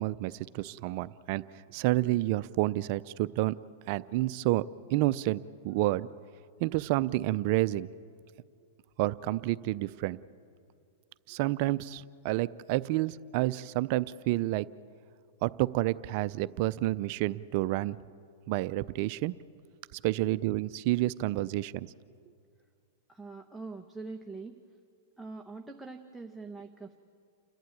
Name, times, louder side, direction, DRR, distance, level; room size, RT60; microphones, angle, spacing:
voice 1, 0.0-1.4 1.7-3.6 3.9-4.6 4.9-6.1 6.6-7.9 9.0-10.2 11.3-14.7 15.4-18.0 18.5-19.3 20.0-21.9, right 17 dB, 50° right, 15 dB, 0.5 m, -29 dB
voice 2, 23.1-24.6 25.2-27.0, right 3 dB, ahead, 1 dB, 0.9 m, -43 dB
29.5 x 11.5 x 9.3 m, 2.3 s
hypercardioid pair, 140°, 0 cm